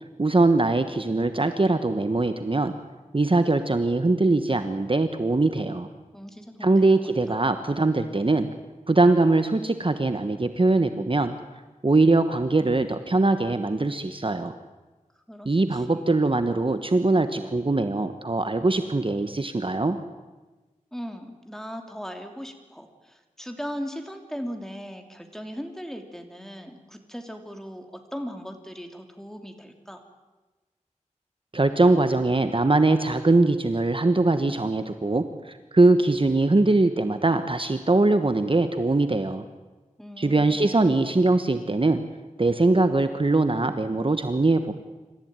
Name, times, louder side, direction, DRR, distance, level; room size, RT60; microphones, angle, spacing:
voice 1, 0.2-2.7 3.1-5.9 6.6-8.5 8.9-11.3 11.8-14.5 15.4-20.0 31.5-39.5 40.2-42.0 42.4-44.7, right 2 dB, 40° right, 9 dB, 1.2 m, -22 dB
voice 2, 6.1-6.9 7.3-7.4 15.3-16.1 20.9-30.0 40.0-40.7, equal, 5° left, 5 dB, 3.0 m, -38 dB
26.5 x 14.5 x 9.0 m, 1.2 s
wide cardioid pair, 55°, 13 cm